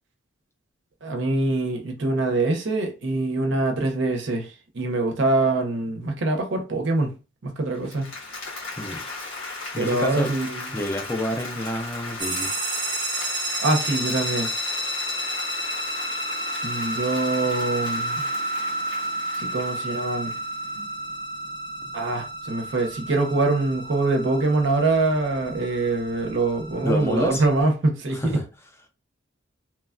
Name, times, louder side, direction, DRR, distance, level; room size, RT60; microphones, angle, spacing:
voice 1, 1.0-7.1 7.4-8.1 9.7-10.7 13.6-14.5 16.6-18.2 19.4-20.3 20.7-20.9 21.9-28.4, right 2 dB, 60° right, 0.6 m, -24 dB
Applause, 7.7-20.8, left 3 dB, 80° left, 1.3 m, -37 dB
voice 2, 9.7-10.3 10.7-12.5 26.8-27.4 28.1-28.4, left 1 dB, 10° left, 0.4 m, -28 dB
sound 1, 12.2-27.6, right 1 dB, 20° right, 0.8 m, -31 dB
3.1 x 2.2 x 2.4 m
head